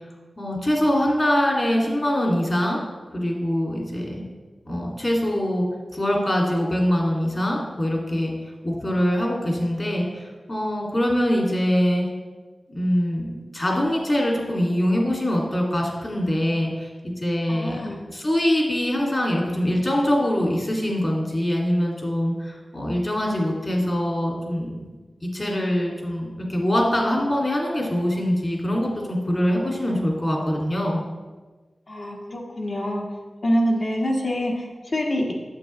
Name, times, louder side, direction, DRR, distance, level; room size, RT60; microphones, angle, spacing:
voice 1, 0.4-2.8 3.1-4.2 4.7-5.7 5.9-8.3 8.6-12.1 12.7-17.8 18.1-24.9 25.2-31.0, equal, 35° left, -2 dB, 2.3 m, -23 dB
voice 2, 17.5-18.0 31.9-33.0 33.4-35.3, equal, 55° left, -1 dB, 1.4 m, -25 dB
8.9 x 7.6 x 3.2 m, 1.3 s
wide cardioid pair, 70°, 0 cm